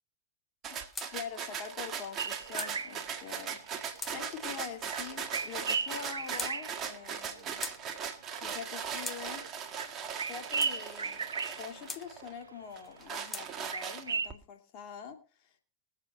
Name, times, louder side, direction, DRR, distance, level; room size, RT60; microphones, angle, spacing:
sound 1, 0.6-12.3 12.8-14.3, right 7 dB, 25° right, 1.6 m, -39 dB
sound 2, 0.9-1.1 2.0-2.7 3.5-4.2 5.0-5.5 6.2-6.5 7.2-7.8 8.6-9.2 10.0-10.7 11.5-12.0 12.8-13.5, left 4 dB, 15° left, 1.3 m, -42 dB
voice 1, 1.1-7.6 8.4-9.5 10.3-11.3 11.6-15.6, left 7 dB, 45° left, 4 dB, 2.6 m, -44 dB
sound 3, 2.2-4.6 4.8-7.6 7.9-12.9 13.2-14.3, right 5 dB, 70° right, 0.9 m, -37 dB
21.5 x 7.4 x 4.1 m, 0.34 s
figure-of-eight pair, 90°, 0 cm